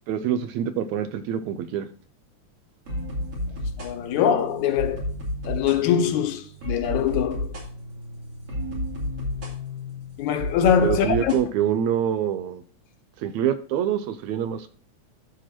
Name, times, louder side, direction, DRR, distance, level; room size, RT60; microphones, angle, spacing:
voice 1, 0.1-1.9 10.8-12.6 13.2-14.7, right 9 dB, 75° right, 1.9 m, -25 dB
sound 1, 2.9-11.4, left 1 dB, 50° right, 3.4 m, -32 dB
voice 2, 3.8-5.0 5.5-7.5 10.2-11.3, left 8 dB, 75° left, 2.2 m, -23 dB
13.0 x 4.7 x 4.4 m
omnidirectional pair, 3.5 m